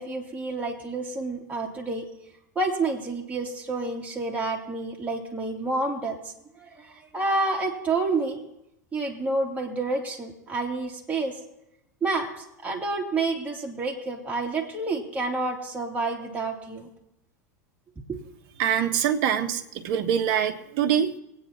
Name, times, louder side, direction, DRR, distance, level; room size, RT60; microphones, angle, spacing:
voice 1, 0.0-2.1 2.5-6.2 6.5-8.4 8.9-11.4 12.0-16.9 18.1-18.2, right 3 dB, 15° right, -1 dB, 2.5 m, -29 dB
voice 2, 18.6-21.1, right 9 dB, 55° right, 6 dB, 1.2 m, -24 dB
23.0 x 9.0 x 2.9 m, 0.82 s
hypercardioid pair, 95°, 9 cm